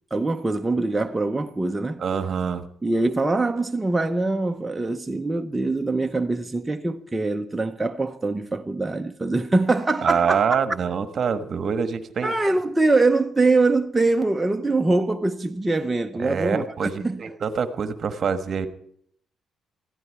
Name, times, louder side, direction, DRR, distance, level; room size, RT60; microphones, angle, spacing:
voice 1, 0.1-2.0 2.8-10.4 12.2-16.6 17.0-17.3, right 2 dB, 15° right, 0.9 m, -23 dB
voice 2, 2.0-2.6 10.0-12.3 16.2-18.7, right 6 dB, 50° right, 1.3 m, -25 dB
20.0 x 14.0 x 4.8 m
cardioid pair, 90°, 0 cm